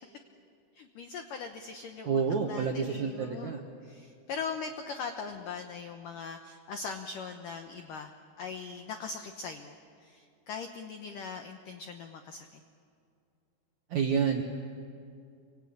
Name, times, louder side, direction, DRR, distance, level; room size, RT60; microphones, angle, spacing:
voice 1, 0.7-2.2 2.5-12.6, left 5 dB, 80° left, 6 dB, 1.9 m, -41 dB
voice 2, 2.1-3.6 13.9-14.4, right 6 dB, 70° right, 2 dB, 1.8 m, -29 dB
28.0 x 24.5 x 8.7 m, 2.4 s
omnidirectional pair, 5.3 m